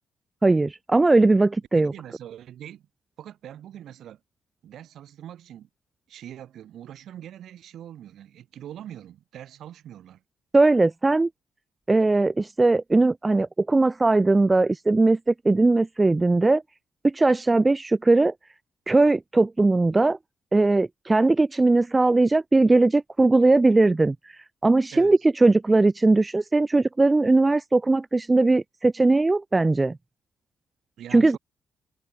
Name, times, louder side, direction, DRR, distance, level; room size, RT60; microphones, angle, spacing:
voice 1, 0.4-1.9 10.5-11.3 11.9-16.6 17.0-18.3 18.9-20.2 20.5-24.2 24.6-30.0 31.1-31.4, right 2 dB, 20° right, 0.4 m, -19 dB
voice 2, 1.7-2.9 3.2-4.2 4.6-5.7 6.1-10.2 24.9-25.2 31.0-31.4, right 11 dB, 70° right, 5.6 m, -42 dB
cardioid pair, 90°, 0 cm